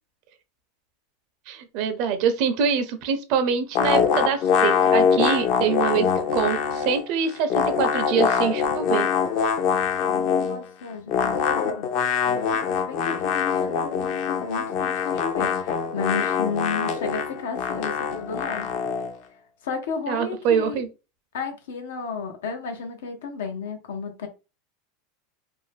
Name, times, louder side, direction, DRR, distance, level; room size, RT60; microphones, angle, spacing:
voice 1, 1.5-6.1 6.3-9.1 20.1-20.9, right 7 dB, 55° right, 0.5 m, -25 dB
sound 1, 3.8-7.0 7.3-10.6 11.1-19.1, left 6 dB, 50° left, 0.5 m, -23 dB
voice 2, 10.1-11.9 12.3-18.7 19.6-20.8 21.3-24.3, left 5 dB, 90° left, 0.7 m, -33 dB
2.6 x 2.1 x 3.2 m
supercardioid pair, 135°, 0 cm